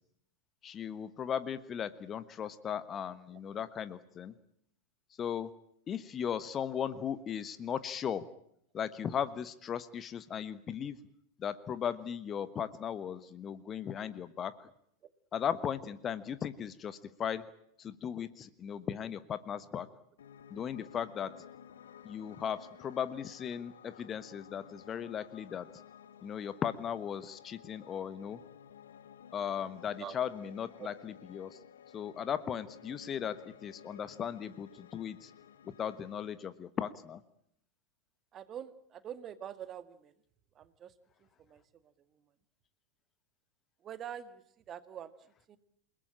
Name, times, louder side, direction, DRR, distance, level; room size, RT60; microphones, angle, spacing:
voice 1, 0.6-4.3 5.2-5.5 5.9-8.2 8.7-11.0 11.4-14.7 15.3-17.4 17.8-19.9 20.5-21.3 22.0-25.7 26.2-28.4 29.3-31.6 31.9-35.3 35.6-37.2, left 8 dB, 25° left, 14 dB, 1.2 m, -37 dB
Piano, 20.2-36.3, left 8 dB, 65° left, 1.4 m, -55 dB
voice 2, 38.3-40.1 40.6-40.9 41.2-42.2 43.8-45.1 45.5-45.6, right 9 dB, 30° right, 11 dB, 2.0 m, -45 dB
29.0 x 19.5 x 8.9 m, 0.72 s
figure-of-eight pair, 90°, 0 cm